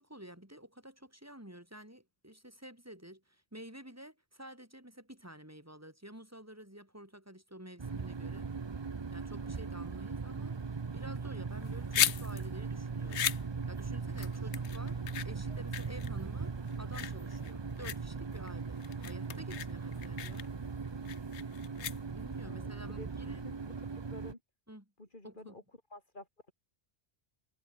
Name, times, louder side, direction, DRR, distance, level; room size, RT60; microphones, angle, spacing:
voice 1, 0.0-8.7 9.1-15.0 15.2-20.5 21.8-23.5 24.7-24.8 25.2-25.6, right 1 dB, 15° right, 4.7 m, -50 dB
sound 1, 7.8-24.3, right 5 dB, 30° right, 0.6 m, -39 dB
sound 2, 11.5-22.4, left 9 dB, 85° left, 1.1 m, -37 dB
voice 2, 22.4-24.4 25.0-25.6 25.9-26.5, left 2 dB, 50° left, 4.6 m, -51 dB
omnidirectional pair, 1.1 m